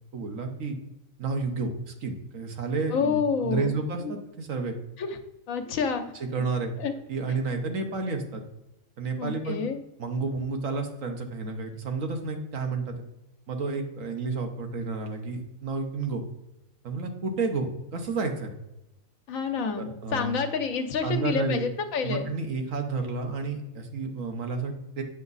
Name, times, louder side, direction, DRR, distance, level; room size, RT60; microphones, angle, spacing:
voice 1, 0.1-0.8 1.2-4.8 6.3-6.7 7.1-8.4 9.0-9.6 10.0-12.9 13.5-16.2 16.8-18.5 19.8-20.3 21.0-21.6 22.0-25.0, right 4 dB, 75° right, 4 dB, 1.5 m, -31 dB
voice 2, 2.9-3.7 4.0-4.1 5.0-5.2 5.5-6.1 6.8-6.9 7.3-7.4 9.2-9.8 19.3-22.3, left 5 dB, 80° left, 6 dB, 1.3 m, -28 dB
8.1 x 6.0 x 4.0 m, 0.94 s
omnidirectional pair, 1.4 m